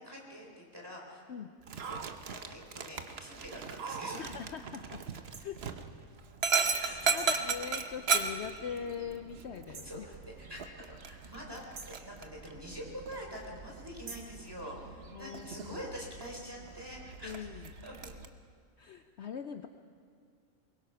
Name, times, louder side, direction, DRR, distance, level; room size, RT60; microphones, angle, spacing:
voice 1, 0.0-1.5 1.8-2.0 2.3-4.2 6.8-7.4 9.7-18.1, equal, 15° right, -1 dB, 3.9 m, -46 dB
Dog, 1.6-18.3, right 5 dB, 50° right, 1.2 m, -37 dB
voice 2, 4.2-5.0 5.4-5.7 6.7-10.1 15.1-15.8 17.2-17.7 18.8-19.7, left 7 dB, 60° left, 8 dB, 0.9 m, -42 dB
sound 1, 5.3-5.5 7.2-7.5 9.7-10.0 11.7-12.1 14.1-14.4, right 4 dB, 85° right, 2.2 m, -47 dB
23.0 x 21.0 x 5.8 m, 2.2 s
omnidirectional pair, 1.4 m